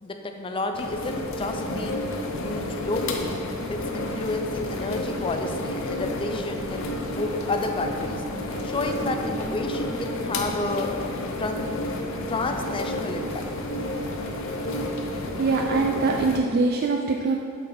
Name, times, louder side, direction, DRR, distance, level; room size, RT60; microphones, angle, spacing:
voice 1, 0.0-2.0 2.4-3.4 3.7-6.9 7.2-8.2 8.6-10.9 11.4-13.4, left 2 dB, 25° left, 5 dB, 0.5 m, -30 dB
sound 1, 0.7-16.4, left 1 dB, 65° left, 0.7 m, -31 dB
voice 2, 15.4-17.4, right 3 dB, 50° right, 2 dB, 0.3 m, -23 dB
8.1 x 4.0 x 4.2 m, 2.5 s
head